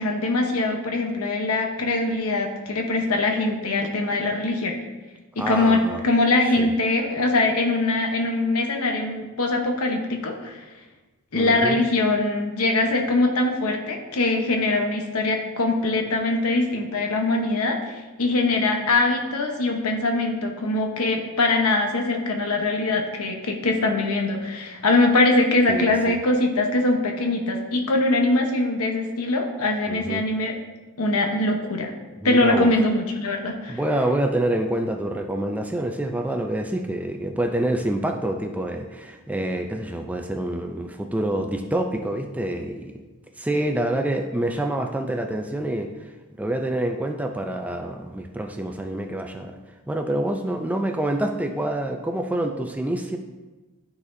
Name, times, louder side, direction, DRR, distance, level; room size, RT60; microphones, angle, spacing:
voice 1, 0.0-4.7 5.4-10.6 11.3-30.6 31.0-31.9 32.2-33.8, left 2 dB, 80° left, 2 dB, 1.0 m, -22 dB
voice 2, 5.4-6.0 6.6-6.7 11.3-11.8 25.7-26.1 29.9-30.2 32.2-32.7 33.7-42.9 43.4-45.9 46.4-49.5 49.9-53.2, right 1 dB, 5° right, 4 dB, 0.4 m, -27 dB
12.0 x 4.1 x 2.7 m, 1.2 s
head